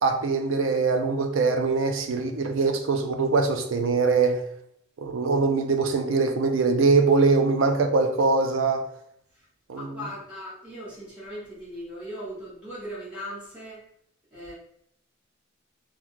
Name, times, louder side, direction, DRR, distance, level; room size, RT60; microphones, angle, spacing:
voice 1, 0.0-4.4 5.0-8.9 9.7-9.9, right 4 dB, 85° right, 6 dB, 0.5 m, -22 dB
voice 2, 9.7-13.8 14.3-14.5, equal, 5° right, -9 dB, 1.2 m, -38 dB
3.0 x 2.3 x 3.7 m, 0.71 s
head